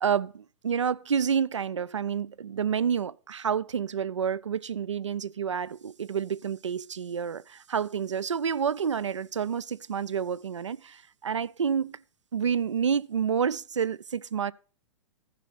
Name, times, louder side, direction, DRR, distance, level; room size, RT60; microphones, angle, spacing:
voice 1, 0.0-12.0 12.3-14.5, right 7 dB, 75° right, 0.4 m, -29 dB
14.5 x 5.0 x 5.7 m
figure-of-eight pair, 110°, 15 cm